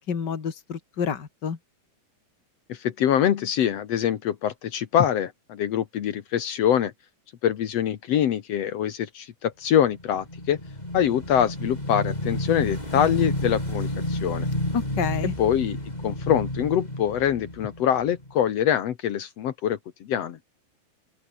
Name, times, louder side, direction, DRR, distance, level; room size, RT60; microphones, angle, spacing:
voice 1, 0.0-1.6 14.7-15.3, left 6 dB, 35° left, 1.7 m, -29 dB
voice 2, 2.7-6.9 7.4-10.6 10.9-14.5 15.4-15.8 16.0-20.4, left 9 dB, 90° left, 1.4 m, -24 dB
Motorcycle / Engine, 9.9-18.4, left 1 dB, 10° left, 6.6 m, -30 dB
open air
omnidirectional pair, 5.1 m